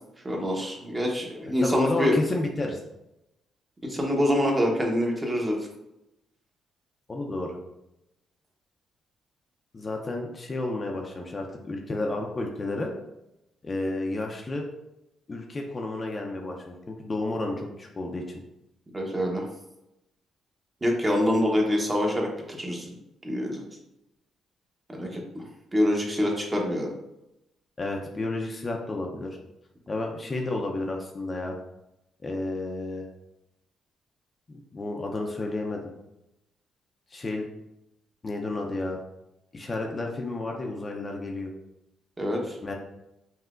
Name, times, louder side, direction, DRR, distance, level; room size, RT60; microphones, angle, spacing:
voice 1, 0.2-2.1 3.8-5.6 18.9-19.4 20.8-23.0 23.2-23.6 24.9-25.4 25.7-26.9 42.2-42.6, equal, 20° right, 0 dB, 1.0 m, -26 dB
voice 2, 1.6-2.8 7.1-7.6 9.7-12.9 13.6-14.7 15.3-18.4 27.8-29.3 29.9-31.6 32.2-33.1 34.5-35.8 37.1-37.5 38.2-39.0 39.5-41.5 42.6-42.7, left 2 dB, 30° left, 1 dB, 0.6 m, -31 dB
5.5 x 2.8 x 2.5 m, 0.89 s
cardioid pair, 90°, 0 cm